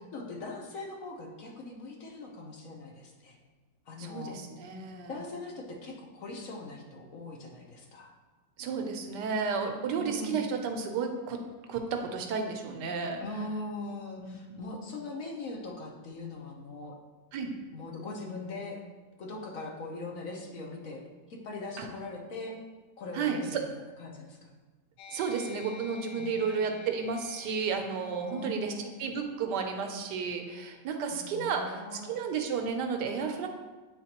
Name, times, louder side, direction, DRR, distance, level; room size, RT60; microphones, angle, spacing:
voice 1, 0.0-3.4 3.9-4.4 5.1-8.1 9.9-10.4 13.2-17.0 17.7-18.8 19.2-21.0 21.3-22.6 23.0-23.6 24.0-24.5 26.2-26.5 28.2-28.9 31.1-32.2, left 2 dB, 60° left, 0 dB, 1.1 m, -41 dB
voice 2, 4.0-5.2 8.6-11.4 11.7-13.2 14.2-14.7 17.3-17.5 21.8-21.9 23.1-23.6 25.1-28.7 29.0-33.5, right 5 dB, 80° right, 4 dB, 1.3 m, -32 dB
sound 1, 25.0-32.0, left 4 dB, 85° left, 1.3 m, -52 dB
8.7 x 3.8 x 2.9 m, 1.3 s
omnidirectional pair, 1.9 m